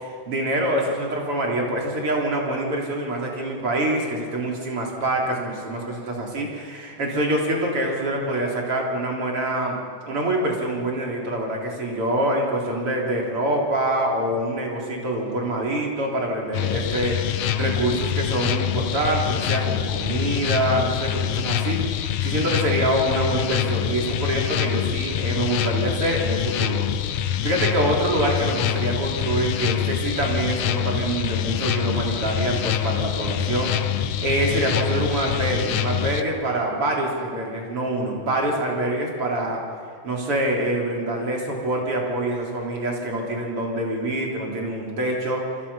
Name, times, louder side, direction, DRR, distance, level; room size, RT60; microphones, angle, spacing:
voice 1, 0.0-9.8 10.1-27.2 27.4-39.6 40.0-45.4, right 1 dB, 40° right, -1 dB, 4.5 m, -25 dB
sound 1, 16.5-36.2, left 10 dB, 85° left, 1.3 m, -25 dB
27.0 x 26.0 x 5.7 m, 2.1 s
omnidirectional pair, 3.8 m